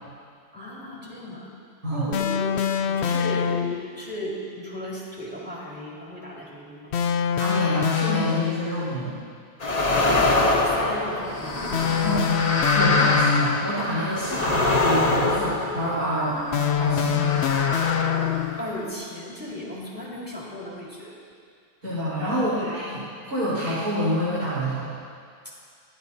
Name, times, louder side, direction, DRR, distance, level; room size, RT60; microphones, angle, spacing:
voice 1, 0.5-1.5 1.9-7.0 9.8-12.1 16.3-17.2 18.6-21.1 22.3-22.7 25.4-25.5, equal, 5° right, -6 dB, 4.4 m, -36 dB
sound 1, 2.1-3.9 6.9-8.8 11.7-13.7 16.5-18.7, left 8 dB, 70° left, 0.6 m, -24 dB
voice 2, 7.4-9.2 12.0-17.6 21.8-24.9, equal, 60° right, -11 dB, 5.0 m, -27 dB
sound 2, 9.6-16.4 17.0-18.9, left 2 dB, 30° left, 1.0 m, -24 dB
26.5 x 17.5 x 2.8 m, 2.2 s
omnidirectional pair, 1.8 m